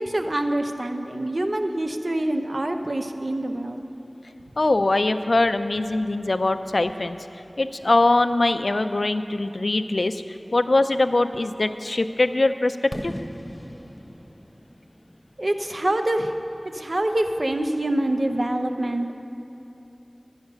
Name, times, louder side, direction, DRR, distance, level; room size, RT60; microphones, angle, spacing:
voice 1, 0.0-3.8 15.4-16.3 16.7-19.2, right 1 dB, 70° right, 5 dB, 0.7 m, -25 dB
voice 2, 4.6-13.1, left 2 dB, 90° left, 10 dB, 0.4 m, -22 dB
Fireworks, 12.9-16.8, equal, 25° left, 0.8 m, -39 dB
11.5 x 8.0 x 6.7 m, 2.9 s
wide cardioid pair, 50°, 0 cm